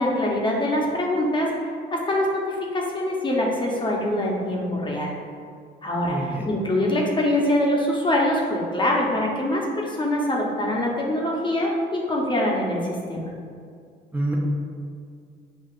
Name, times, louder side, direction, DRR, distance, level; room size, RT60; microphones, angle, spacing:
voice 1, 0.0-5.1 5.8-13.3, left 1 dB, 25° left, -2 dB, 0.8 m, -24 dB
voice 2, 6.0-6.5 14.1-14.3, right 1 dB, 10° right, -3 dB, 0.6 m, -28 dB
6.5 x 2.4 x 2.4 m, 2.2 s
cardioid pair, 90°, 20 cm